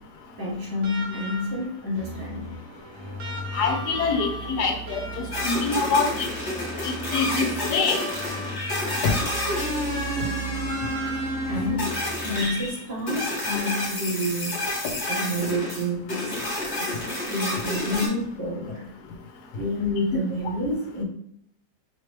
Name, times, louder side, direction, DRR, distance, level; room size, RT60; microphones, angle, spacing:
voice 1, 0.4-2.6 11.5-12.0 12.2-14.6 15.1-16.5 16.8-19.0 19.5-21.0, left 1 dB, 85° right, -5 dB, 2.3 m, -29 dB
sound 1, 0.8-1.8 3.2-5.8 7.1-11.6 12.9-13.0, equal, 65° right, 1.6 m, -38 dB
sound 2, 1.9-12.3, right 3 dB, 35° right, 0.4 m, -38 dB
voice 2, 3.5-5.0 5.4-6.1 6.8-8.0 9.0-9.1, left 5 dB, 70° left, 4 dB, 1.4 m, -24 dB
sound 3, 5.3-18.1, left 1 dB, 40° left, 1.7 m, -29 dB
5.0 x 3.1 x 3.3 m, 0.70 s
omnidirectional pair, 1.8 m